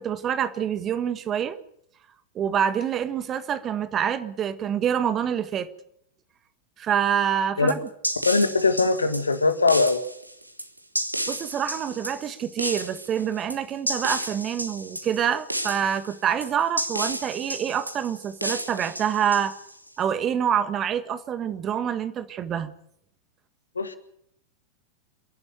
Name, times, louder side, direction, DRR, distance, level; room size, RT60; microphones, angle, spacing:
voice 1, 0.0-1.6 2.3-5.7 6.8-7.7 11.3-19.5 20.0-22.7, right 8 dB, 30° right, 12 dB, 1.7 m, -26 dB
sound 1, 7.7-19.9, right 1 dB, 85° right, 1.5 m, -32 dB
voice 2, 8.3-10.0 23.8-24.0, left 3 dB, 75° left, 10 dB, 2.0 m, -21 dB
29.0 x 11.5 x 9.2 m, 0.72 s
figure-of-eight pair, 90°, 0 cm